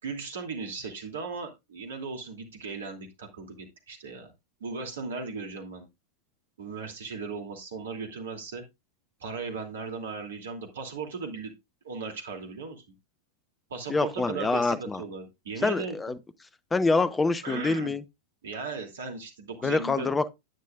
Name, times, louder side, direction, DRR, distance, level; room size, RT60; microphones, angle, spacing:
voice 1, 0.0-4.3 4.6-5.9 6.6-8.6 9.2-11.5 11.8-12.8 13.7-16.0 17.4-18.0 18.4-20.1, right 4 dB, 65° right, 2.7 m, -37 dB
voice 2, 13.9-15.0 15.6-16.2 16.7-18.0 19.6-20.3, left 3 dB, 10° left, 0.8 m, -26 dB
10.5 x 9.4 x 2.4 m
figure-of-eight pair, 90°, 0 cm